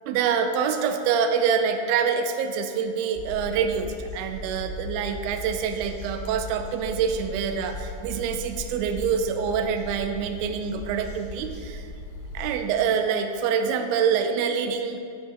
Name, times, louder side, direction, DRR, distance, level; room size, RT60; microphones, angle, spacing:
voice 1, 0.1-11.9 12.3-15.0, right 6 dB, 85° right, 6 dB, 2.4 m, -26 dB
sound 1, 3.1-12.6, left 1 dB, 75° left, 3.2 m, -38 dB
9.4 x 3.8 x 6.1 m, 2.4 s
omnidirectional pair, 4.2 m